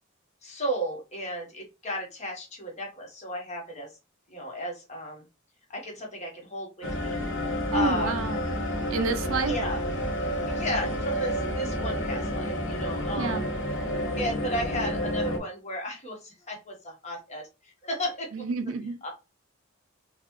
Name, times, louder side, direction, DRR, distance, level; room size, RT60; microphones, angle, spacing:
voice 1, 0.4-3.9 4.3-5.2 5.7-7.2 7.7-8.2 9.4-9.8 10.5-13.4 14.2-18.3 19.0-19.1, equal, 35° left, 1.3 m, -34 dB
sound 1, 6.8-15.4, equal, 65° left, 0.9 m, -30 dB
voice 2, 7.7-8.4 8.9-9.5 13.2-13.4 18.3-19.0, right 4 dB, 75° right, 0.5 m, -28 dB
4.0 x 2.4 x 3.1 m
head